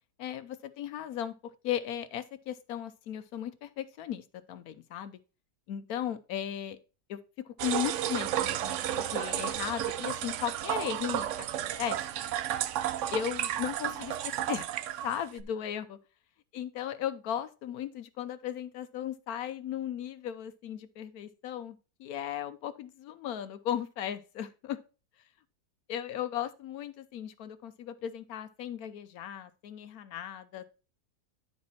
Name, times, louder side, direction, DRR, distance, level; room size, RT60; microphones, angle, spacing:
voice 1, 0.2-5.2 5.7-6.8 7.1-12.0 13.1-14.7 15.0-16.0 16.5-24.8 25.9-30.6, left 10 dB, 70° left, 1.0 m, -36 dB
sound 1, 7.6-15.4, right 11 dB, 75° right, 0.7 m, -32 dB
10.5 x 4.6 x 4.1 m
omnidirectional pair, 1.8 m